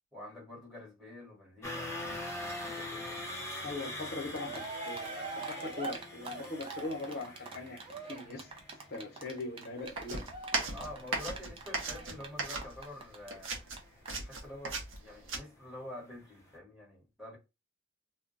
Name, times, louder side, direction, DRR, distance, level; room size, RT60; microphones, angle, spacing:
voice 1, 0.1-2.0 2.5-3.2 10.7-13.5 14.2-17.4, left 1 dB, ahead, 1.1 m, -47 dB
sound 1, 1.6-15.7 16.0-16.2 16.5-16.6, left 1 dB, 15° left, 0.7 m, -44 dB
voice 2, 3.6-7.8 8.1-8.5 8.9-10.2, left 2 dB, 50° left, 0.8 m, -40 dB
Cheering, 4.1-4.2 4.3-13.5 13.7-13.8 14.0-14.1, right 3 dB, 25° right, 0.5 m, -43 dB
sound 2, 10.0-13.0 13.3-15.4, right 3 dB, 70° right, 0.8 m, -36 dB
2.2 x 2.1 x 3.7 m
head